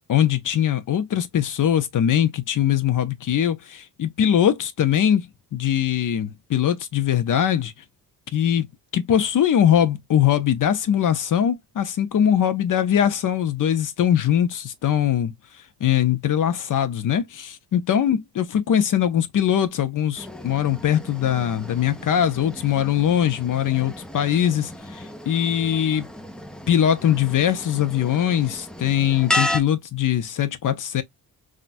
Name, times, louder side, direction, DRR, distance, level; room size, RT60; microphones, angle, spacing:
voice 1, 0.1-5.3 5.5-7.7 8.3-8.7 8.9-15.3 15.8-26.1 26.7-31.0, left 10 dB, 50° left, 0.6 m, -21 dB
sound 1, 20.2-29.6, left 1 dB, ahead, 0.3 m, -33 dB
3.7 x 2.2 x 2.5 m
cardioid pair, 110°, 42 cm